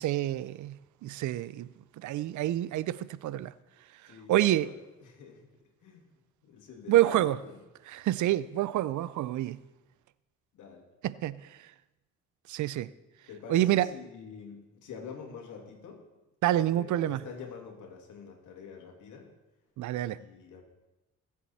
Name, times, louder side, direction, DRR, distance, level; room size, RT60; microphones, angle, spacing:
voice 1, 0.0-1.7 2.0-3.5 4.3-4.7 6.9-7.4 7.9-9.6 11.0-11.4 12.5-12.9 13.5-13.9 16.4-17.2 19.8-20.2, right 14 dB, 75° right, 18 dB, 0.6 m, -27 dB
voice 2, 4.1-4.7 5.0-5.5 5.8-6.1 6.4-7.6 10.5-10.9 13.3-16.0 16.7-19.3 20.1-20.6, left 6 dB, 80° left, 2 dB, 2.7 m, -46 dB
21.0 x 7.7 x 4.2 m, 1.0 s
cardioid pair, 90°, 30 cm